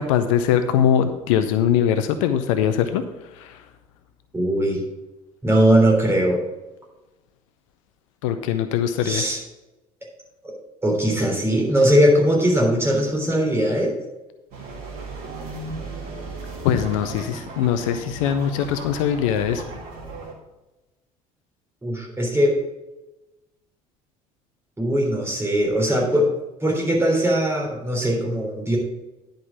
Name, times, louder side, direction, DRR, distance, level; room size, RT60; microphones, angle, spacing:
voice 1, 0.0-3.0 3.3-3.6 8.2-9.2 16.6-19.6, left 9 dB, 65° left, 10 dB, 0.6 m, -21 dB
voice 2, 4.3-4.8 5.4-6.4 9.0-9.4 10.8-13.9 21.8-22.5 24.8-26.3 26.6-28.8, equal, 15° right, -1 dB, 3.4 m, -20 dB
sound 1, 14.5-20.3, right 2 dB, 55° right, 2.5 m, -35 dB
10.5 x 5.2 x 5.8 m, 1.0 s
figure-of-eight pair, 60°, 18 cm